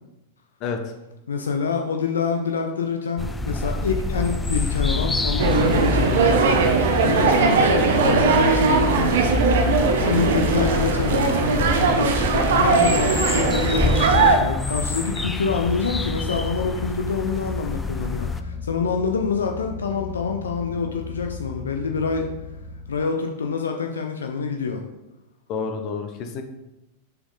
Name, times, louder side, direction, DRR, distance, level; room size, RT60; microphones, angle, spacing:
voice 1, 1.3-9.2 9.9-22.3 22.9-24.8, left 5 dB, 70° left, 3 dB, 0.6 m, -26 dB
sound 1, 3.2-18.4, left 3 dB, 10° left, 0.4 m, -27 dB
sound 2, 3.4-23.0, left 3 dB, 10° right, 1.8 m, -35 dB
sound 3, 5.4-14.4, right 4 dB, 60° right, 0.8 m, -20 dB
voice 2, 25.5-26.4, left 5 dB, 40° left, 6 dB, 0.8 m, -29 dB
6.7 x 4.6 x 3.7 m, 0.95 s
figure-of-eight pair, 90°, 0 cm